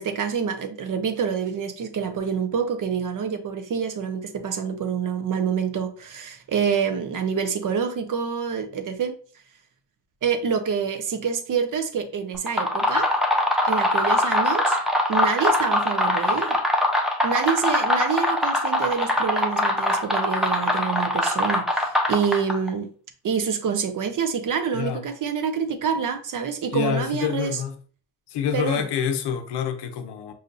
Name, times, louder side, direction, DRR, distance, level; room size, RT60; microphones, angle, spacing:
voice 1, 0.0-9.1 10.2-13.1 13.7-14.8 15.1-16.6 17.2-22.9 23.2-27.6 28.5-28.9, right 6 dB, 50° right, 0.7 m, -27 dB
sound 1, 12.3-22.7, left 1 dB, ahead, 0.7 m, -22 dB
voice 2, 26.7-27.7 28.3-30.3, left 9 dB, 85° left, 0.7 m, -27 dB
5.6 x 2.6 x 2.6 m
cardioid pair, 100°, 40 cm